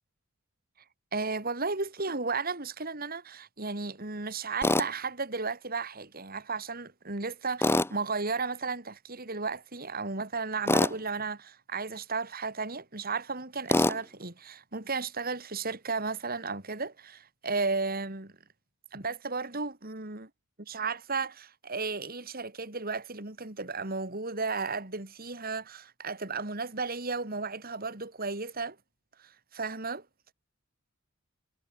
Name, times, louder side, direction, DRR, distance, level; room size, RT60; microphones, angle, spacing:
voice 1, 1.1-18.3 18.9-20.3 20.6-28.8 29.2-30.0, right 4 dB, 45° right, 3.1 m, -34 dB
Tools, 4.6-4.9 7.6-7.9 10.7-11.0 13.7-14.0, left 1 dB, 10° left, 1.1 m, -24 dB
head